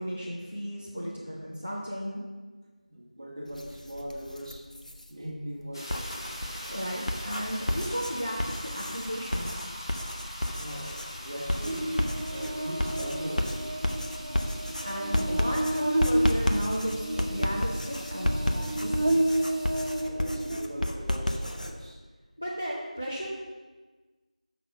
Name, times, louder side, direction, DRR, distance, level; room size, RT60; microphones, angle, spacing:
voice 1, 0.0-2.2 6.7-9.7 14.8-19.2 22.4-23.3, equal, 10° left, -6 dB, 0.3 m, -34 dB
voice 2, 2.9-4.7 5.1-6.1 10.6-11.8 12.3-13.7 20.0-22.0, equal, 30° right, -4 dB, 1.5 m, -40 dB
Writing, 3.5-5.1 5.7-21.7, left 1 dB, 75° left, 0.9 m, -32 dB
sound 1, 5.7-20.0, equal, 35° left, 1.9 m, -43 dB
Buzz, 11.6-21.1, right 1 dB, 55° right, 0.6 m, -31 dB
6.2 x 5.8 x 5.9 m, 1.3 s
figure-of-eight pair, 175°, 4 cm